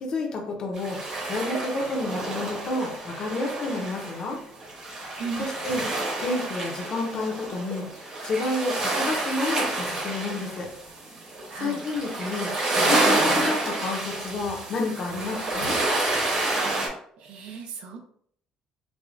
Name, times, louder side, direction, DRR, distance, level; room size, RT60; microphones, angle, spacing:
voice 1, 0.0-1.0 1.2-4.4 5.4-5.8 6.2-7.8 8.2-10.7 11.6-12.5 12.8-15.8, left 2 dB, 35° left, 1 dB, 0.7 m, -30 dB
sound 1, 0.8-16.9, right 2 dB, 35° right, 0.9 m, -29 dB
voice 2, 5.2-5.5 11.5-11.8 17.2-18.0, right 5 dB, 65° right, 4 dB, 0.5 m, -35 dB
4.7 x 2.2 x 2.5 m, 0.62 s
cardioid pair, 175°, 2 cm